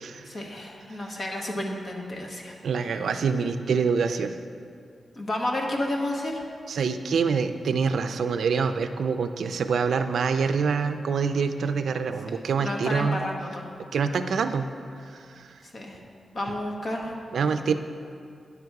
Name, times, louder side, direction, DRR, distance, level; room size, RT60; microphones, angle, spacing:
voice 1, 0.2-2.5 5.1-6.5 12.6-13.7 15.6-16.0 16.3-17.1, left 1 dB, 45° left, 0 dB, 1.2 m, -31 dB
voice 2, 2.6-4.4 6.7-13.2 13.9-14.7 15.4-15.5 17.3-17.7, right 5 dB, 80° right, 8 dB, 0.4 m, -25 dB
9.7 x 6.6 x 4.7 m, 2.3 s
wide cardioid pair, 120°, 0 cm